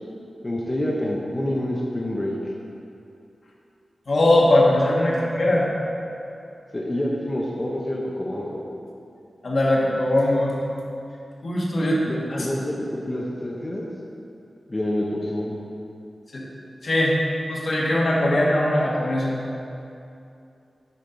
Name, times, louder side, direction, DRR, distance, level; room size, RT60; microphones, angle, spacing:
voice 1, 0.4-2.3 6.7-8.6 12.0-13.8 14.7-15.6, left 1 dB, 25° left, -4 dB, 0.8 m, -27 dB
voice 2, 4.1-5.7 9.4-10.5 11.4-12.0 12.3-12.5 16.3-16.4 16.8-17.1 17.5-19.4, left 1 dB, 55° left, -4 dB, 1.4 m, -20 dB
10.0 x 5.4 x 3.9 m, 2.7 s
wide cardioid pair, 115°, 0 cm